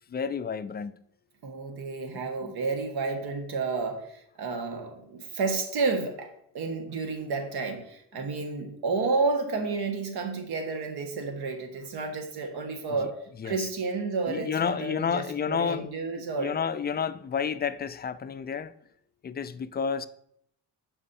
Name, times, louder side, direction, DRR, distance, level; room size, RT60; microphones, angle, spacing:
voice 1, 0.1-1.0 2.4-2.5 8.2-8.3 13.0-13.1 13.4-13.7 14.3-15.9 16.2-18.7 19.2-20.1, left 7 dB, 25° left, 0.3 m, -31 dB
voice 2, 1.4-13.1 13.4-16.5, right 4 dB, 70° right, 1.5 m, -31 dB
6.4 x 5.5 x 4.2 m
cardioid pair, 90°, 39 cm